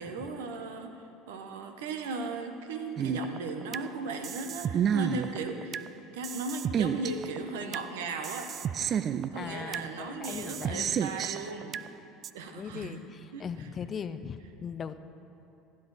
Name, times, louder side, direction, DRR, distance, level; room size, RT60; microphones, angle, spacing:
voice 1, 0.0-5.8 6.1-8.5 9.0-11.8 12.3-13.0 13.3-13.7, right 3 dB, 80° right, 6 dB, 0.9 m, -37 dB
sound 1, 3.0-3.9 4.2-5.9 6.2-7.9 8.2-9.9 10.2-11.9 12.2-12.3, right 8 dB, 45° right, 0.3 m, -31 dB
voice 2, 9.3-11.0 12.5-15.0, left 6 dB, 35° left, 12 dB, 0.5 m, -39 dB
16.0 x 8.6 x 4.1 m, 2.8 s
hypercardioid pair, 75°, 0 cm